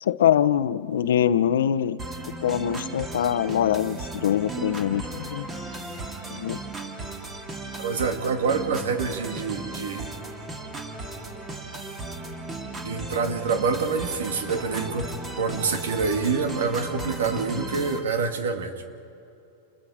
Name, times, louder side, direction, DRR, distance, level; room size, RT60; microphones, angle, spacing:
voice 1, 0.0-2.0 2.4-5.5 6.3-6.6, left 10 dB, 85° left, 14 dB, 0.8 m, -23 dB
sound 1, 2.0-18.0, right 2 dB, 20° right, 2.6 m, -36 dB
voice 2, 7.8-10.2 12.8-18.7, right 5 dB, 90° right, 5 dB, 2.3 m, -26 dB
29.5 x 21.5 x 5.0 m, 2.7 s
supercardioid pair, 140°, 0 cm